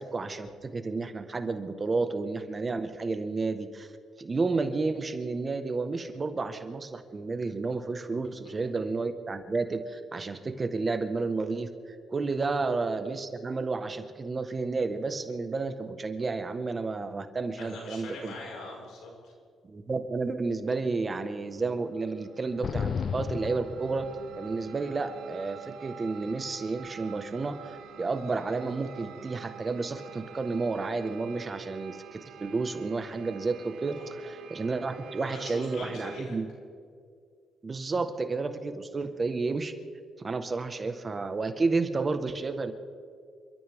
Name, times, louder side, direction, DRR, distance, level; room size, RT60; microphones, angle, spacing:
voice 1, 0.0-3.9 4.2-11.7 12.1-18.3 19.6-24.1 24.4-36.5 37.6-39.7 40.2-42.7, right 3 dB, 30° right, 8 dB, 1.4 m, -31 dB
voice 2, 17.6-19.3 34.0-34.1 35.2-36.4, left 2 dB, 85° left, -2 dB, 5.4 m, -42 dB
sound 1, 21.4-36.2, right 9 dB, 80° right, 0.9 m, -48 dB
sound 2, 22.6-24.5, left 6 dB, 50° left, 0.5 m, -33 dB
28.5 x 13.0 x 3.7 m, 2.2 s
cardioid pair, 90°, 0 cm